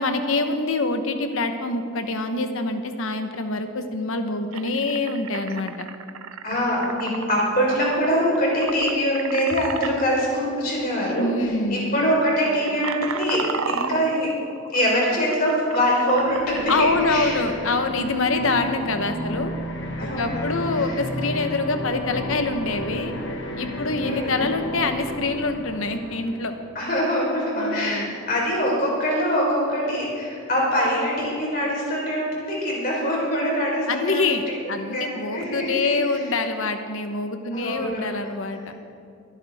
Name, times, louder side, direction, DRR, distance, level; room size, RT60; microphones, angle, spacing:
voice 1, 0.0-5.7 11.2-12.0 16.7-19.5 20.0-23.1 23.6-26.5 27.5-28.1 33.9-38.7, left 3 dB, 80° left, 7 dB, 1.0 m, -25 dB
sound 1, 3.9-4.0 4.5-9.9 10.9-11.1 11.4-11.7 12.3-17.0, right 6 dB, 85° right, 0.6 m, -33 dB
voice 2, 6.4-14.3 14.7-17.4 20.0-20.9 24.0-24.5 26.7-34.2 34.9-35.9 37.5-38.0, equal, 45° left, -3 dB, 4.0 m, -24 dB
sound 2, 16.2-26.7, equal, 60° left, 1.5 m, -33 dB
22.5 x 10.5 x 3.5 m, 2.3 s
head